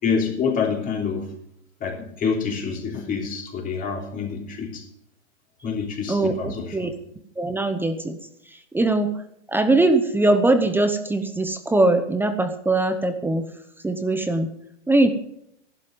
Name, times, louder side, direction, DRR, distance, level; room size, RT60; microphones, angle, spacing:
voice 1, 0.0-1.3 1.8-4.8 5.6-6.8, left 6 dB, 25° left, 1 dB, 3.3 m, -27 dB
voice 2, 6.1-6.9 7.4-8.2 8.5-9.2 9.5-13.5 13.8-14.5 14.9-15.1, right 2 dB, 5° right, 9 dB, 0.8 m, -21 dB
14.0 x 12.0 x 5.4 m, 0.74 s
hypercardioid pair, 140°, 36 cm